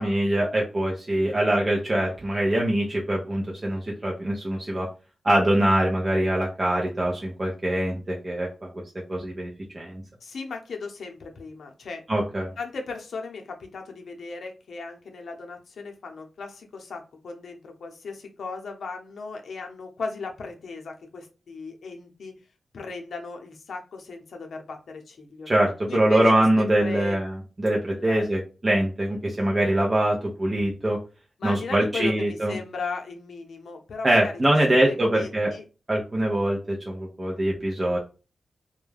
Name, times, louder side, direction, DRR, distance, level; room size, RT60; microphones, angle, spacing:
voice 1, 0.0-4.9 5.2-8.7 9.1-10.0 12.1-12.5 25.5-27.3 27.6-31.0 31.4-32.5 34.0-35.5 35.9-38.0, right 1 dB, 25° right, -2 dB, 0.6 m, -23 dB
voice 2, 10.2-12.0 12.6-22.4 22.7-25.5 25.9-27.2 28.0-28.3 31.4-34.3 34.7-35.6, left 4 dB, 80° left, 3 dB, 0.6 m, -37 dB
2.3 x 2.2 x 3.2 m, 0.32 s
wide cardioid pair, 125°, 0 cm